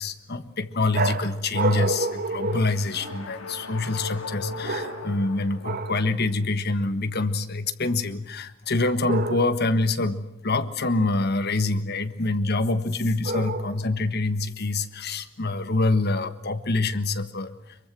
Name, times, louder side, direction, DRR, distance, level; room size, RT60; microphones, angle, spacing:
voice 1, 0.0-17.5, left 2 dB, 55° left, 11 dB, 1.5 m, -26 dB
sound 1, 0.9-3.4 4.6-5.3 5.6-6.1 9.0-9.7 13.2-14.0, right 3 dB, 45° right, 1.4 m, -29 dB
sound 2, 1.9-6.2, left 2 dB, 85° left, 3.3 m, -38 dB
24.0 x 23.0 x 7.7 m, 0.81 s
head